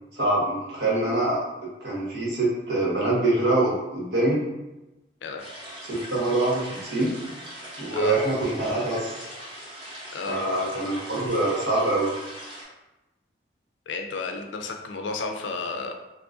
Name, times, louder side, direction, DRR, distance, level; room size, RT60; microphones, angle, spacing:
voice 1, 0.1-1.4 1.8-4.4 5.9-7.1 7.8-9.3 10.3-12.1, right 2 dB, 65° right, -5 dB, 1.1 m, -24 dB
sound 1, 5.4-12.6, equal, 25° right, 0.7 m, -41 dB
voice 2, 10.1-10.5 13.9-15.9, left 3 dB, 85° left, 4 dB, 0.4 m, -32 dB
2.9 x 2.5 x 3.6 m, 1.0 s
head